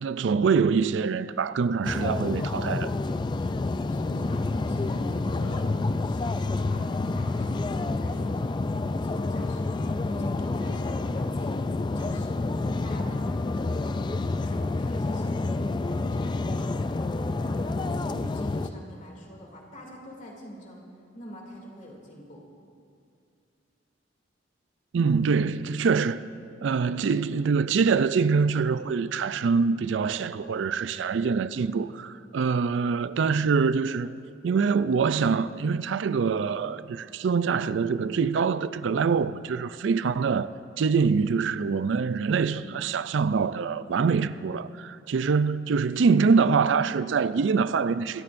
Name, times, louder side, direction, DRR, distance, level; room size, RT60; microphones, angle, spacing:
voice 1, 0.0-2.9 24.9-26.2 26.6-34.1 34.4-40.5 40.8-48.2, right 5 dB, 80° right, 0.4 m, -24 dB
sound 1, 1.8-18.7, left 3 dB, 25° left, 0.3 m, -28 dB
voice 2, 3.5-5.7 6.1-9.7 10.0-12.4 12.8-13.2 13.6-20.8 21.1-22.4 30.0-30.3, equal, 45° left, 2.8 m, -45 dB
27.0 x 13.0 x 2.6 m
head